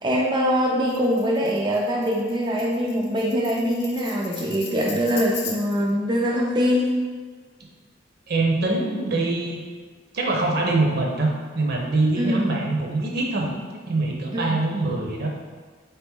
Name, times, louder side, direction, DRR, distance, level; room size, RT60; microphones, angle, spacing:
voice 1, 0.0-6.9 12.2-12.4 14.3-14.6, equal, 25° right, -3 dB, 0.4 m, -23 dB
Tambourine, 0.9-5.9, left 5 dB, 55° left, 0.5 m, -38 dB
voice 2, 8.3-9.6 10.1-15.3, right 2 dB, 60° right, 0 dB, 0.7 m, -24 dB
3.9 x 2.9 x 3.5 m, 1.5 s
head